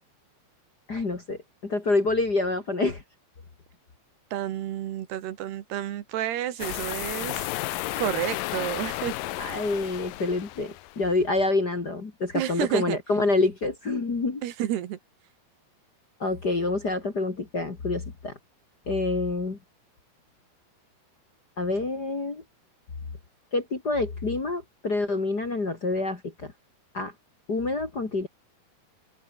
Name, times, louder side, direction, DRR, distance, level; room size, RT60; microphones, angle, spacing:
voice 1, 0.9-3.0 9.4-14.4 16.2-18.3 18.9-19.6 21.6-22.4 23.5-26.5 26.9-27.1 27.5-28.3, left 3 dB, 30° left, 2.3 m, -27 dB
voice 2, 4.3-7.5 8.0-9.1 12.3-13.0 14.4-15.0, right 12 dB, 80° right, 3.7 m, -30 dB
sound 1, 6.6-11.1, left 16 dB, 75° left, 2.3 m, -33 dB
open air
omnidirectional pair, 4.7 m